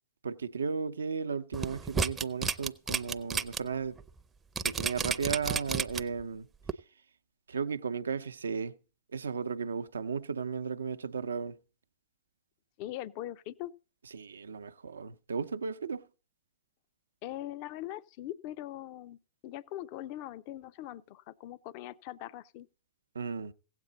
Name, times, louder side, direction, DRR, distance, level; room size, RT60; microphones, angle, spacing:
voice 1, 0.2-4.0 4.6-6.5 7.5-8.7 9.1-11.5 14.1-16.0 23.1-23.5, right 5 dB, 85° right, 0.6 m, -35 dB
sound 1, 1.5-3.6 4.0-4.1 4.6-6.2 6.7-6.8, right 5 dB, 15° right, 0.5 m, -31 dB
voice 2, 12.8-13.7 17.2-19.2 19.4-22.7, left 14 dB, 45° left, 0.5 m, -41 dB
16.0 x 8.3 x 3.9 m
hypercardioid pair, 115°, 0 cm